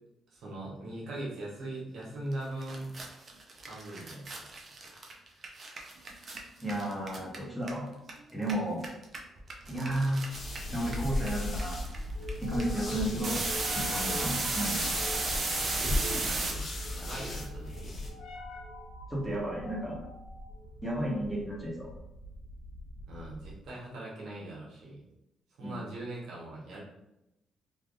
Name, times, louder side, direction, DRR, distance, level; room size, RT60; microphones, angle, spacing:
voice 1, 0.3-2.9 3.7-4.3 12.8-13.4 15.6-17.9 23.1-25.0 25.6-26.8, right 1 dB, 75° right, -5 dB, 1.0 m, -41 dB
sound 1, 2.3-2.4 2.6-8.1 8.4-16.5, right 3 dB, 45° right, 0.6 m, -34 dB
voice 2, 6.6-7.9 8.3-8.8 9.7-10.2 10.7-11.8 12.4-13.4 13.7-14.8 19.1-20.0 20.8-21.9 25.6-25.8, right 1 dB, ahead, -4 dB, 1.0 m, -33 dB
sound 2, 10.3-18.1, left 1 dB, 40° left, 0.7 m, -36 dB
sound 3, 10.5-23.7, equal, 85° left, 0.5 m, -44 dB
3.2 x 2.4 x 2.5 m, 0.89 s
cardioid pair, 90°, 0 cm